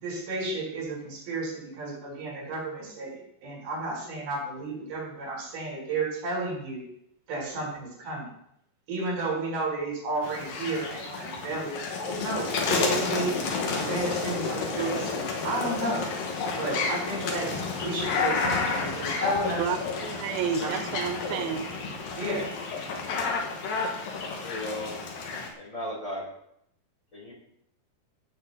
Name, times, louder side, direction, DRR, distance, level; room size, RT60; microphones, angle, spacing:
voice 1, 0.0-6.8 7.3-8.3 8.9-11.8 12.1-13.3 13.8-16.0 16.6-17.5 17.8-19.6 20.6-20.7 22.1-22.4, right 2 dB, 70° right, -2 dB, 6.2 m, -32 dB
sound 1, 10.2-25.5, left 4 dB, 65° left, 3.4 m, -30 dB
voice 2, 19.6-21.7, right 7 dB, 90° right, 8 dB, 1.6 m, -31 dB
voice 3, 24.4-25.0 25.6-26.3 27.1-27.3, left 1 dB, 20° left, -3 dB, 4.1 m, -35 dB
16.0 x 8.4 x 4.1 m, 0.74 s
omnidirectional pair, 4.5 m